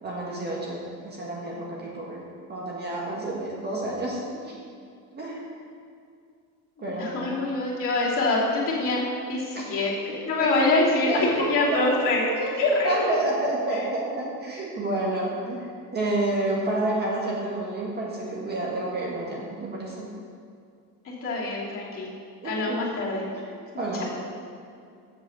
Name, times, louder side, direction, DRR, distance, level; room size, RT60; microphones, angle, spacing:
voice 1, 0.0-2.2 2.5-4.5 5.1-5.5 6.8-7.5 9.5-9.6 10.4-10.7 11.1-11.3 11.7-12.0 12.3-20.1 22.4-22.8 23.3-24.1, right 2 dB, 25° right, -4 dB, 1.6 m, -30 dB
voice 2, 6.8-9.0 9.3-12.2 12.6-13.1 13.7-13.8 21.0-22.1 22.4-23.2 23.9-24.1, left 2 dB, 35° left, -7 dB, 2.9 m, -25 dB
7.9 x 7.5 x 7.0 m, 2.3 s
cardioid pair, 170°, 36 cm